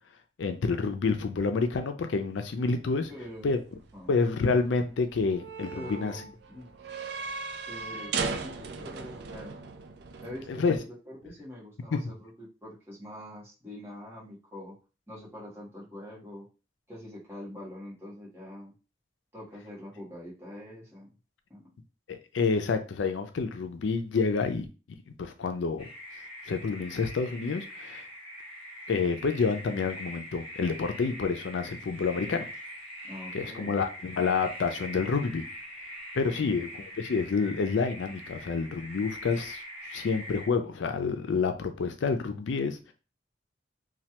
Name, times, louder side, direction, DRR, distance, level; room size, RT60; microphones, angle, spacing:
voice 1, 0.4-3.1 3.4-3.6 4.1-6.1 10.5-10.8 11.9-12.0 22.1-24.7 25.2-25.9 26.5-28.1 28.9-32.5 33.3-35.5 36.1-39.6 39.9-42.9, left 4 dB, 90° left, 8 dB, 0.4 m, -28 dB
sound 1, 2.5-10.8, right 4 dB, 60° right, 0.4 m, -38 dB
voice 2, 3.1-3.6 3.9-4.2 5.7-6.7 7.6-9.6 10.2-14.8 15.1-16.5 16.9-18.7 19.3-21.1 21.5-21.6 33.0-33.8 36.2-36.5, left 1 dB, 15° right, -7 dB, 1.3 m, -44 dB
sound 2, 25.8-40.5, equal, 30° left, 0.8 m, -43 dB
3.2 x 2.3 x 2.9 m, 0.33 s
head